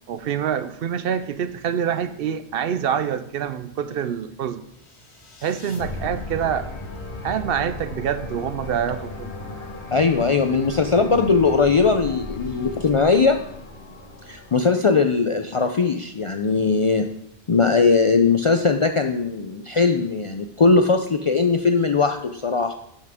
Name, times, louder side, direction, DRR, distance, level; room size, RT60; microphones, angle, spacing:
voice 1, 0.1-4.6 5.4-6.7 7.2-9.3, right 8 dB, 65° right, 12 dB, 0.7 m, -26 dB
sound 1, 4.8-15.0, left 2 dB, 85° left, 1.5 m, -36 dB
voice 2, 9.9-13.4 14.3-17.1 17.5-22.7, left 4 dB, 50° left, 6 dB, 0.4 m, -19 dB
12.0 x 6.0 x 3.5 m, 0.73 s
omnidirectional pair, 1.1 m